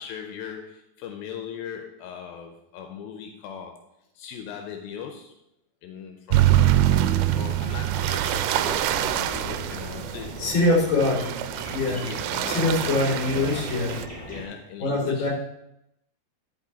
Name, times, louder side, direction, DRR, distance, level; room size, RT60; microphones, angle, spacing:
voice 1, 0.0-3.8 4.2-5.3 5.8-6.7 7.3-10.9 11.3-11.4 11.8-12.7 13.1-13.6 14.3-15.3, left 7 dB, 80° left, 4 dB, 2.5 m, -39 dB
sound 1, 6.3-14.1, right 12 dB, 90° right, 2.5 m, -25 dB
sound 2, 8.6-14.4, equal, 5° left, 2.8 m, -39 dB
voice 2, 10.4-11.2 11.7-12.0 12.5-13.9 14.8-15.3, left 2 dB, 35° left, -4 dB, 2.8 m, -23 dB
10.5 x 5.6 x 4.0 m, 0.83 s
omnidirectional pair, 4.4 m